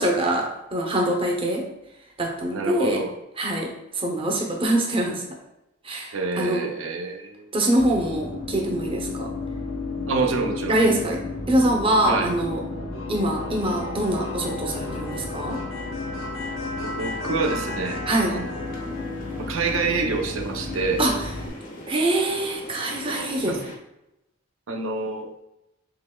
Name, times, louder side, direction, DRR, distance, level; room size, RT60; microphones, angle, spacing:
voice 1, 0.0-1.7 2.2-3.0 3.4-5.2 5.8-6.6 7.5-9.3 10.7-11.2 11.5-12.6 13.1-15.6 18.1-18.4 21.0-21.2 21.9-23.6, right 1 dB, 30° right, 0 dB, 0.7 m, -24 dB
voice 2, 2.5-3.1 6.1-7.4 10.1-10.8 12.0-12.3 16.8-18.0 18.3-18.7 19.4-21.0 23.4-23.6 24.7-25.3, right 4 dB, 75° right, 4 dB, 0.6 m, -27 dB
sound 1, 7.8-21.5, left 2 dB, 75° left, 0.9 m, -32 dB
sound 2, 18.4-23.8, left 1 dB, 45° left, 0.6 m, -41 dB
5.7 x 3.0 x 2.2 m, 0.90 s
head